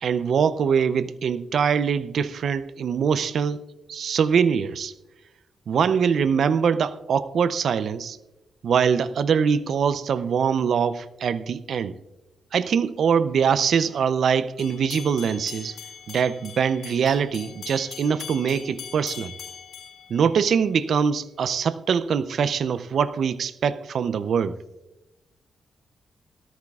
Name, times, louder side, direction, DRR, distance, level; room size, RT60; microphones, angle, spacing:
voice 1, 0.0-4.9 5.7-8.2 8.6-11.9 12.5-15.8 16.1-19.3 20.1-24.6, right 7 dB, 70° right, 0.5 m, -23 dB
sound 1, 14.6-20.8, left 7 dB, 80° left, 3.9 m, -41 dB
17.5 x 13.5 x 2.4 m
cardioid pair, 65°, 0 cm